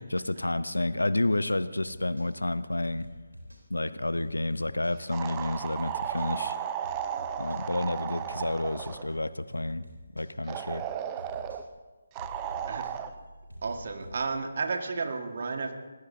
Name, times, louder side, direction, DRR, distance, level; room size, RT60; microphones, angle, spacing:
voice 1, 0.1-3.1 3.7-6.5 7.4-9.9 10.1-10.9, left 2 dB, 75° left, 15 dB, 0.7 m, -30 dB
sound 1, 1.8-2.3 2.8-3.6 4.2-5.0 5.3-5.5 5.8-6.3 6.8-7.6 8.2-9.0 9.5-10.3 10.7-10.9 11.2-11.6 12.2-14.4, equal, 85° right, 3.6 m, -47 dB
sound 2, 5.1-9.1 10.5-11.6 12.2-13.1, right 9 dB, 20° right, 0.7 m, -34 dB
voice 2, 12.7-13.0 13.6-15.7, right 4 dB, 45° right, 5 dB, 1.7 m, -32 dB
25.5 x 20.0 x 2.7 m, 1.3 s
figure-of-eight pair, 150°, 0 cm